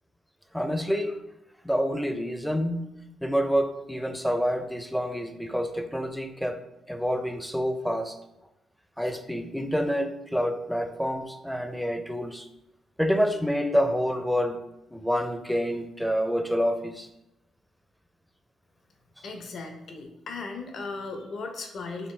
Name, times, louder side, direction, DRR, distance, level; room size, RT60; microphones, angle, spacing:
voice 1, 0.5-1.2 1.6-2.8 3.2-6.6 6.9-8.2 9.0-12.5 13.0-14.6 14.9-17.1, equal, ahead, 7 dB, 0.4 m, -27 dB
voice 2, 19.2-22.1, left 3 dB, 60° left, 4 dB, 0.7 m, -37 dB
5.1 x 2.5 x 3.2 m, 0.89 s
cardioid pair, 90°, 0 cm